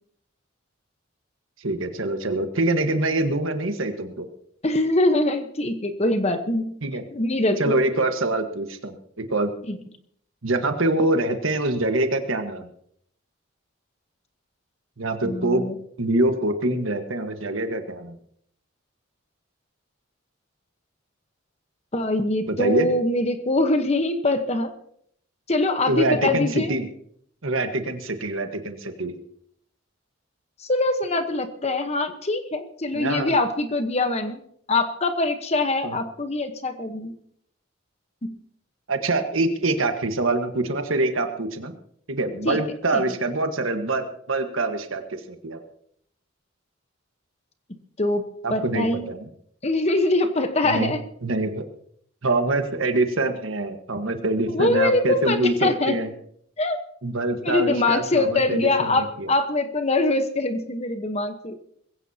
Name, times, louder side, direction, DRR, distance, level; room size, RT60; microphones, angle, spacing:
voice 1, 1.6-4.3 6.8-7.0 7.6-9.5 10.4-12.7 15.0-15.7 16.0-18.2 22.5-22.9 25.9-26.9 27.4-29.1 32.9-33.4 35.8-36.0 38.9-41.7 42.1-45.6 48.4-49.3 50.6-50.9 51.2-51.6 52.2-56.1 57.0-59.3, right 2 dB, 75° right, 6 dB, 1.4 m, -25 dB
voice 2, 4.6-6.8 7.1-7.8 9.7-9.8 15.2-15.7 21.9-24.7 25.5-26.7 30.6-34.4 34.7-37.2 38.2-38.4 42.4-42.6 42.9-43.0 48.0-49.1 49.6-51.0 54.5-56.0 56.6-56.8 57.4-61.6, left 2 dB, 30° left, 8 dB, 1.1 m, -23 dB
21.5 x 16.0 x 2.8 m, 0.67 s
head